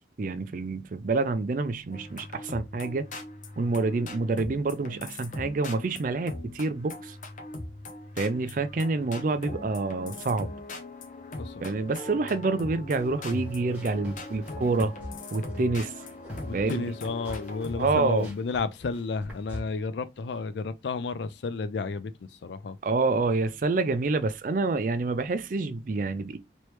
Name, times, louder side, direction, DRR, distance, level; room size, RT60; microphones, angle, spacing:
voice 1, 0.2-3.1 3.6-7.2 8.2-10.5 11.6-14.9 15.3-15.9 16.5-16.8 17.8-18.3 22.8-26.4, right 3 dB, 45° right, 0.4 m, -27 dB
sound 1, 1.9-17.9, left 2 dB, 45° left, 0.7 m, -41 dB
sound 2, 12.9-19.6, left 1 dB, 10° right, 1.4 m, -40 dB
voice 2, 16.4-22.1 22.4-22.8, left 4 dB, 75° left, 0.4 m, -32 dB
3.0 x 3.0 x 3.2 m
head